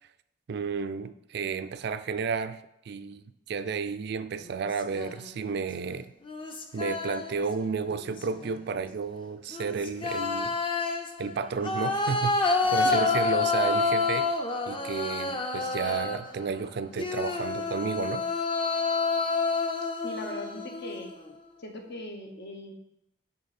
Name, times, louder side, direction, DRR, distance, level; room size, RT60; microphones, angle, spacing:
voice 1, 0.5-2.6 2.9-6.1 6.7-10.5 11.2-14.3 14.7-18.3, right 5 dB, 60° right, 12 dB, 0.4 m, -32 dB
sound 1, 4.5-5.3 6.3-7.5 7.9-8.5 9.5-16.4 17.0-21.3, left 3 dB, 30° left, 0.7 m, -29 dB
voice 2, 12.6-13.1 20.0-21.1 21.6-22.7, left 2 dB, 60° left, 4 dB, 1.1 m, -40 dB
10.5 x 4.0 x 4.2 m, 0.79 s
head